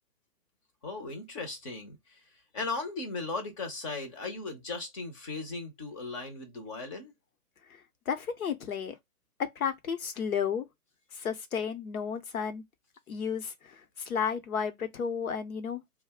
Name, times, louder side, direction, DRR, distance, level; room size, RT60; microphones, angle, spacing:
voice 1, 0.8-2.2 2.5-7.1, left 3 dB, 20° left, 0.7 m, -37 dB
voice 2, 8.1-9.0 9.4-10.7 11.1-12.6 13.1-15.8, left 7 dB, 65° left, 0.9 m, -32 dB
2.4 x 2.2 x 3.4 m
hypercardioid pair, 135°, 46 cm